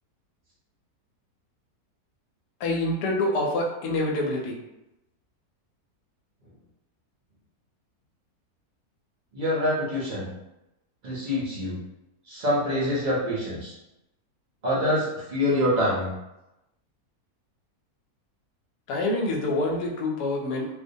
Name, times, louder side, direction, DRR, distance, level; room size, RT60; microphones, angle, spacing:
voice 1, 2.6-4.6 18.9-20.7, left 2 dB, 90° left, 0 dB, 1.2 m, -26 dB
voice 2, 9.3-10.3 11.0-11.8 12.2-13.7 14.6-16.1, left 1 dB, 60° right, -6 dB, 0.5 m, -25 dB
2.6 x 2.1 x 2.6 m, 0.93 s
omnidirectional pair, 1.7 m